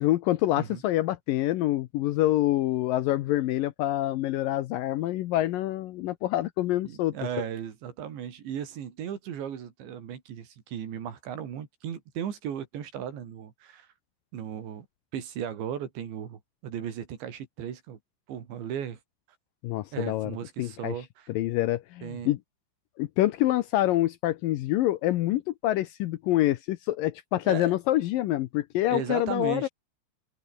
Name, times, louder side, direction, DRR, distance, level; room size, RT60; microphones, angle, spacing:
voice 1, 0.0-7.1 19.6-20.3 20.6-20.9 21.3-22.4 23.0-29.7, left 15 dB, 85° left, 1.9 m, -26 dB
voice 2, 6.9-13.9 14.3-14.9 15.1-18.0 18.3-19.0 19.9-21.3 22.0-22.3 27.5-27.8 28.9-29.7, right 9 dB, 75° right, 5.4 m, -36 dB
omnidirectional pair, 5.2 m